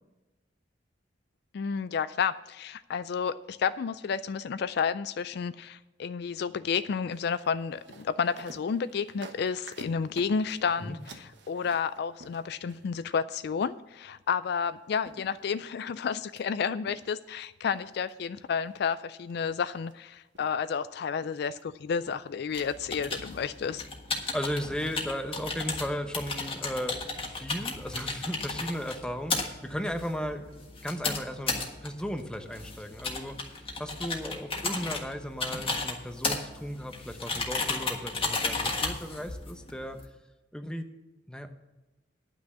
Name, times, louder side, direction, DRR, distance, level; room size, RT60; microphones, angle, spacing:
voice 1, 1.5-23.8, left 6 dB, 60° left, 14 dB, 0.3 m, -31 dB
sound 1, 7.1-13.1 14.7-14.8 15.1-16.4 16.9-17.4 17.7-18.1 18.7-19.0 19.3-19.9 20.3-20.8 21.2-21.6 22.1-22.3 22.6-22.7, right 2 dB, 70° right, 1.2 m, -51 dB
sound 2, 22.5-40.0, left 3 dB, 30° left, 1.6 m, -34 dB
voice 2, 24.3-30.5 30.8-33.4 33.8-40.0 40.5-40.9 41.3-41.5, equal, 5° left, 6 dB, 0.8 m, -35 dB
10.0 x 6.1 x 8.4 m, 1.1 s
head